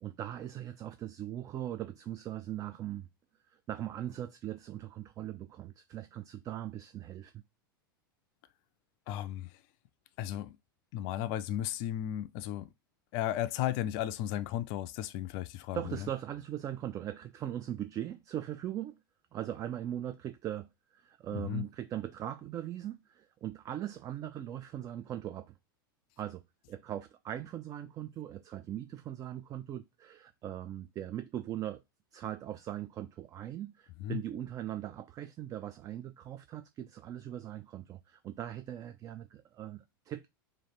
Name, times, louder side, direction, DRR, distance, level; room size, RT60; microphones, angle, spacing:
voice 1, 0.0-3.1 3.5-7.4 15.7-19.0 19.3-25.5 26.2-26.4 26.7-31.8 32.1-40.3, right 11 dB, 30° right, 0.3 m, -40 dB
voice 2, 9.1-9.6 10.2-10.6 10.9-12.7 13.1-16.1 21.3-21.6 34.0-34.2, left 12 dB, 45° left, 0.4 m, -35 dB
3.1 x 2.5 x 4.3 m
hypercardioid pair, 95°, 12 cm